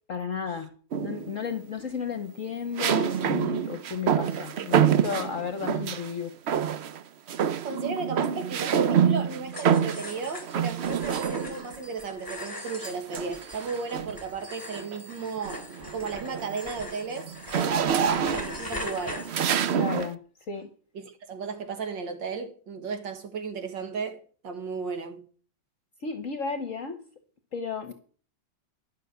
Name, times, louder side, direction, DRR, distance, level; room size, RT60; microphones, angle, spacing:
voice 1, 0.1-6.6 19.7-20.2 20.5-20.7 26.0-27.0 27.5-27.9, left 6 dB, 50° left, 1.3 m, -33 dB
sound 1, 0.9-1.4 2.8-6.1 6.5-7.0 7.3-11.7 12.8-14.2 14.8-15.0 15.4-20.1, right 8 dB, 65° right, 0.6 m, -27 dB
voice 2, 7.6-15.7 15.9-19.3 21.0-25.2, right 5 dB, 85° right, 2.4 m, -35 dB
sound 2, 9.5-20.1, left 1 dB, 10° left, 2.7 m, -41 dB
12.0 x 6.2 x 7.9 m
omnidirectional pair, 1.9 m